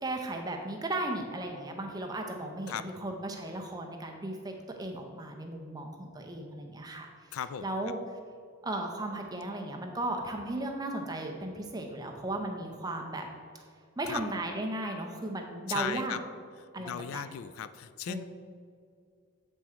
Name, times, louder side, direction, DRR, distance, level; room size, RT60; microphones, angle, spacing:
voice 1, 0.0-2.7 3.0-8.0 8.6-13.3 14.0-16.2 16.7-17.2 18.1-18.2, right 2 dB, 20° right, 2 dB, 0.6 m, -36 dB
voice 2, 7.3-7.7 14.1-14.2 15.7-16.2 16.6-18.2, left 9 dB, 75° left, 13 dB, 0.3 m, -37 dB
7.7 x 3.6 x 4.4 m, 2.2 s
head